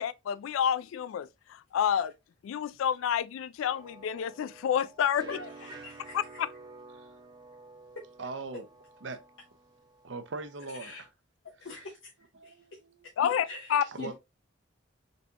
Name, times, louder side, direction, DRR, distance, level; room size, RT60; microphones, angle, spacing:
voice 1, 0.0-2.1 2.4-5.3 6.1-6.5 13.2-13.8, left 8 dB, 90° left, 0.3 m, -29 dB
sound 1, 3.7-11.1, right 3 dB, 20° right, 0.6 m, -51 dB
voice 2, 5.2-6.2 10.8-11.0 11.6-12.1 12.4-12.8 13.5-14.1, left 3 dB, 70° left, 0.8 m, -44 dB
voice 3, 8.2-8.7 9.0-9.2 10.0-11.1 12.4-12.9 13.9-14.1, right 3 dB, 70° right, 0.7 m, -40 dB
4.0 x 3.6 x 2.8 m
head